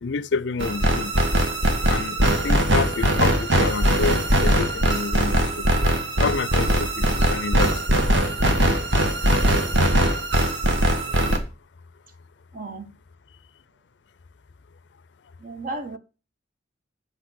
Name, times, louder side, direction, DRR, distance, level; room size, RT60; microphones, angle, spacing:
voice 1, 0.0-1.1 1.9-5.7 6.2-7.8, left 5 dB, 75° left, 0.5 m, -28 dB
sound 1, 0.6-11.4, right 1 dB, 90° right, 1.5 m, -21 dB
voice 2, 12.5-12.9 15.4-16.0, right 2 dB, 50° right, 1.1 m, -33 dB
8.0 x 5.5 x 6.2 m
head